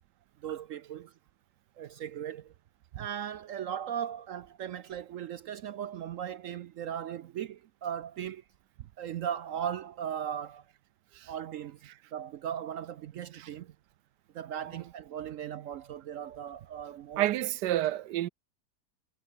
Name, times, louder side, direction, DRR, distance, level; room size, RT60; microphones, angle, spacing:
voice 1, 0.4-1.1 1.8-2.5 2.9-8.4 9.0-10.6 11.3-13.7 14.3-17.3, right 9 dB, 65° right, 0.8 m, -38 dB
voice 2, 17.2-18.3, right 14 dB, 85° right, 1.3 m, -30 dB
omnidirectional pair, 1.8 m